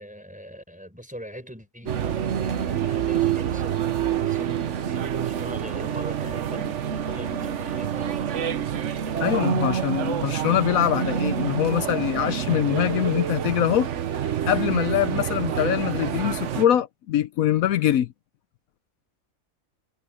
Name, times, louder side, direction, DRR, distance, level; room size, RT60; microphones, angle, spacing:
voice 1, 0.0-1.9 2.3-8.6, equal, 5° right, 4.4 m, -41 dB
sound 1, 1.9-16.7, right 9 dB, 60° right, 1.2 m, -27 dB
voice 2, 9.2-13.9 14.5-18.1, left 11 dB, 80° left, 1.1 m, -23 dB
omnidirectional pair, 1.5 m